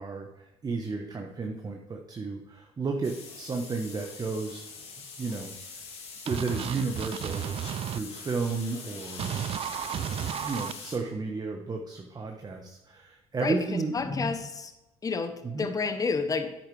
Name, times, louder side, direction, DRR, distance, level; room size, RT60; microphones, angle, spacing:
voice 1, 0.0-4.6 5.2-5.8 6.2-7.5 7.9-9.3 10.2-13.9 15.4-15.7, right 4 dB, 30° right, 3 dB, 1.2 m, -33 dB
sound 1, 3.0-11.0, left 5 dB, 50° left, 2.2 m, -43 dB
sound 2, 6.3-8.0 9.2-10.7, right 10 dB, 45° right, 0.4 m, -33 dB
voice 2, 13.9-14.7 15.0-16.6, left 4 dB, 25° left, 9 dB, 1.0 m, -29 dB
10.5 x 8.2 x 3.4 m, 1.0 s
supercardioid pair, 70°, 13 cm